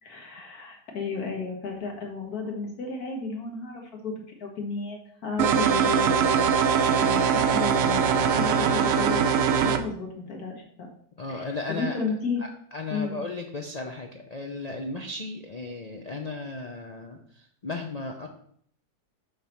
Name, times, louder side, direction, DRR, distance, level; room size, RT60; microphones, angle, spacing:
voice 1, 0.0-4.1 4.4-6.5 7.0-9.3 9.6-10.9 11.3-12.4 12.9-13.2, left 4 dB, 65° left, 0 dB, 2.0 m, -33 dB
sound 1, 5.4-9.8, right 7 dB, 65° right, 0.9 m, -22 dB
voice 2, 11.2-12.0 12.4-18.3, left 3 dB, 80° left, 3 dB, 0.3 m, -35 dB
6.6 x 5.3 x 4.5 m, 0.64 s
omnidirectional pair, 1.7 m